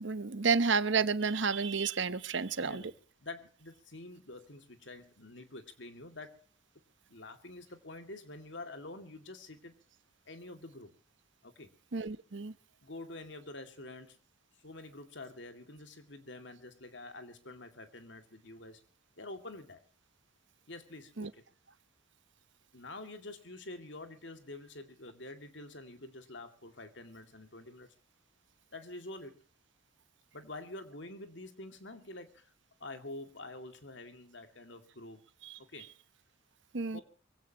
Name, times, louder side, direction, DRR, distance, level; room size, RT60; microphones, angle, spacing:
voice 1, 0.0-2.8 11.9-12.5 21.2-21.3 35.4-35.6 36.7-37.0, right 5 dB, 65° right, 0.9 m, -31 dB
voice 2, 2.6-6.5 7.1-9.7 10.3-10.9 11.4-11.7 12.8-14.2 14.6-18.8 19.2-19.8 20.7-21.4 22.7-27.9 28.7-29.4 30.3-32.5 32.8-35.2 35.7-35.9 36.9-37.0, left 2 dB, 65° left, 2.4 m, -47 dB
24.5 x 16.5 x 3.0 m
head